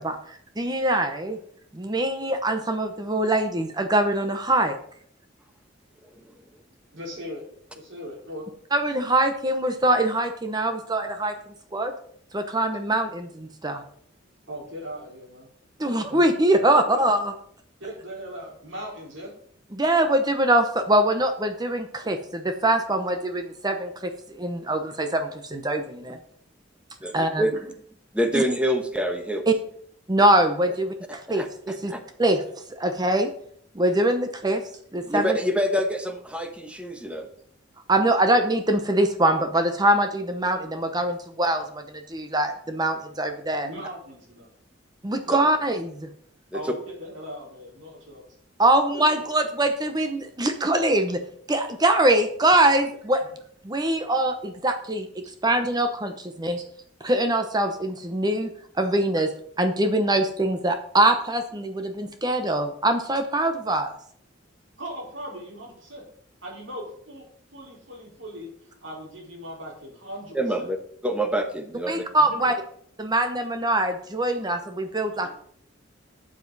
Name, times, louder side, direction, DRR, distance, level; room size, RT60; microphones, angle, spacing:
voice 1, 0.0-1.4 1.7-4.8 8.7-11.3 11.7-11.9 12.3-13.8 15.8-17.3 19.7-26.2 27.1-27.4 28.3-28.4 29.5-29.6 30.1-31.9 32.2-32.4 32.8-33.3 33.7-34.6 34.9-35.4 37.9-43.7 45.0-46.1 48.6-51.2 51.5-53.2 53.6-56.6 57.0-58.5 58.8-59.3 59.6-63.9 71.9-72.5 73.0-75.3, right 1 dB, 20° right, 7 dB, 0.8 m, -23 dB
voice 2, 6.9-7.4 7.7-8.5 14.5-15.5 16.9-17.0 17.8-19.3 43.6-44.5 46.5-48.2 48.9-49.1 64.8-66.0 66.4-67.2 67.5-70.7 72.2-72.5 75.2-75.3, equal, 85° right, -2 dB, 4.3 m, -39 dB
voice 3, 27.0-27.5 28.1-29.5 31.1-32.0 35.1-37.3 45.3-45.4 46.5-46.6 70.3-70.8 71.0-72.1, equal, 5° right, 6 dB, 1.1 m, -26 dB
12.5 x 7.4 x 4.0 m, 0.62 s
head